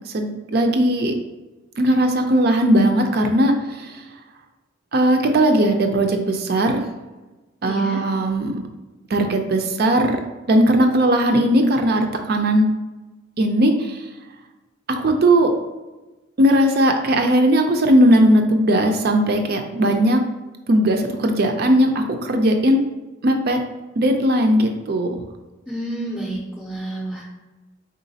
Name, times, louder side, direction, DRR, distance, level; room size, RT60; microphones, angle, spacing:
voice 1, 0.1-1.1 1.8-3.9 4.9-6.8 7.6-8.6 9.1-10.2 10.5-12.7 13.4-14.0 14.9-15.5 16.4-20.2 20.7-22.8 23.2-23.6 24.0-25.1, right 1 dB, 50° right, 4 dB, 0.4 m, -18 dB
voice 2, 7.6-8.0 25.7-27.3, right 1 dB, 5° left, -4 dB, 0.6 m, -29 dB
3.9 x 3.8 x 2.7 m, 1.1 s
head